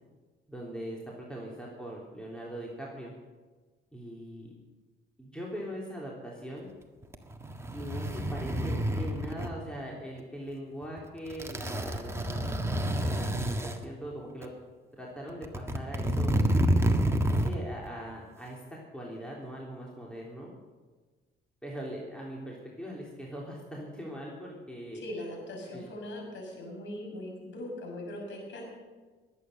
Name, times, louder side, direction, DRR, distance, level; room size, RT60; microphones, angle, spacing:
voice 1, 0.5-3.1 3.9-4.5 5.2-6.7 7.7-14.5 15.0-16.4 17.3-20.5 21.6-25.0 25.7-25.9, equal, 5° left, -3 dB, 3.3 m, -41 dB
sound 1, 7.0-9.5 10.8-11.0 11.3-13.8 14.4-14.5 15.3-17.6 17.9-18.0, right 1 dB, 15° right, 1.6 m, -29 dB
voice 2, 24.9-28.6, left 1 dB, 70° left, 0 dB, 6.4 m, -40 dB
21.5 x 9.1 x 6.6 m, 1.3 s
cardioid pair, 90°, 20 cm